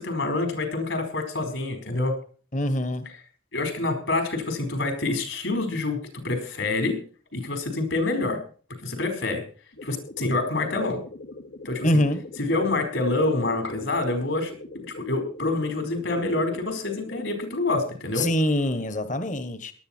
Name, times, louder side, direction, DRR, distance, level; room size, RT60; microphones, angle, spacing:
voice 1, 0.0-2.2 3.5-7.0 7.3-8.4 8.8-9.4 9.8-11.0 11.6-11.9 12.4-18.3, left 2 dB, 65° left, 7 dB, 4.8 m, -27 dB
voice 2, 2.5-3.0 11.8-12.2 18.2-19.7, left 1 dB, 40° left, 11 dB, 1.5 m, -24 dB
sound 1, 9.7-17.3, left 2 dB, 85° left, 2.7 m, -42 dB
18.5 x 12.0 x 4.5 m, 0.39 s
head